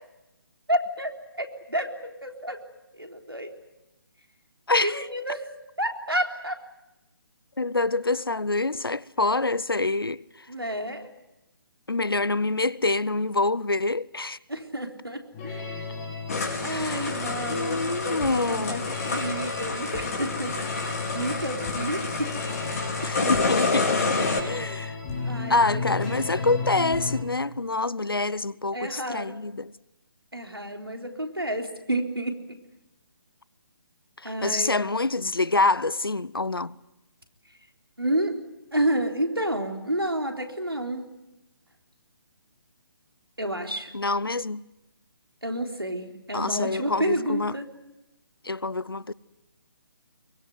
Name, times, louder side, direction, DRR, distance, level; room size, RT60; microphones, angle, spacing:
voice 1, 0.7-1.1 1.4-2.6 3.0-3.5 4.8-6.6 10.5-11.1 14.5-15.8 16.6-20.6 21.1-22.3 23.0-23.4 25.3-25.8 28.7-29.4 30.3-32.4 34.2-34.8 38.0-38.4 38.7-41.1 43.4-43.9 45.4-47.7, right 1 dB, 85° right, 3.7 m, -30 dB
voice 2, 4.7-5.1 7.6-10.2 11.9-14.4 16.7-17.2 17.5-18.8 23.0-25.0 25.5-29.7 34.2-36.8 43.9-44.6 46.3-47.5 48.4-49.1, left 3 dB, 75° left, 0.8 m, -26 dB
sound 1, 15.3-27.2, left 4 dB, 20° left, 4.3 m, -34 dB
sound 2, 16.3-24.4, left 3 dB, 40° left, 4.4 m, -29 dB
23.0 x 21.5 x 9.4 m
figure-of-eight pair, 145°, 12 cm